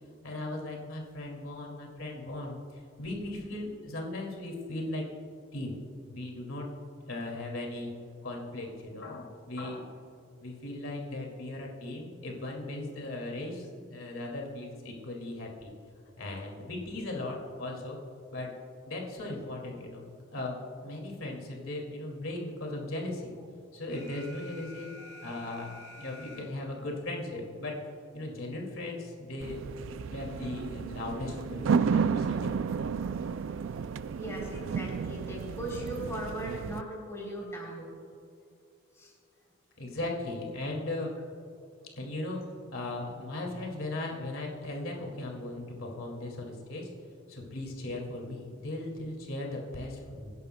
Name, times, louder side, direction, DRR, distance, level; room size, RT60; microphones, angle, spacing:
voice 1, 0.2-2.6 3.0-5.1 5.5-5.8 6.1-6.7 7.1-7.9 8.2-10.0 10.4-15.7 16.2-18.0 18.3-18.5 18.9-20.0 20.3-23.3 23.7-24.9 25.2-27.8 28.1-29.7 30.1-32.5 39.8-41.1 41.9-46.9 47.3-50.3, left 2 dB, 85° left, 0 dB, 2.3 m, -37 dB
Alarm, 23.9-26.9, left 2 dB, 55° left, 2.3 m, -49 dB
sound 1, 29.4-36.8, right 6 dB, 70° right, 0.3 m, -32 dB
voice 2, 34.2-37.9 38.9-39.1, right 1 dB, 15° left, -3 dB, 3.3 m, -39 dB
24.5 x 11.0 x 2.2 m, 2.5 s
head